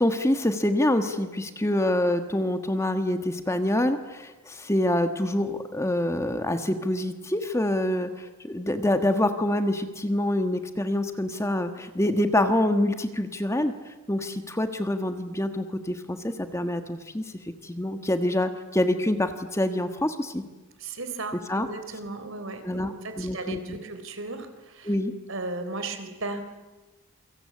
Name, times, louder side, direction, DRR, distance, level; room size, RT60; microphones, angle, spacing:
voice 1, 0.0-13.7 14.1-17.2 17.6-20.4 21.5-21.7 22.6-23.8 24.8-25.1, left 1 dB, 15° left, 8 dB, 1.4 m, -26 dB
voice 2, 20.8-24.9 25.3-26.4, right 3 dB, 65° right, 8 dB, 3.8 m, -35 dB
28.0 x 24.5 x 8.6 m, 1.2 s
head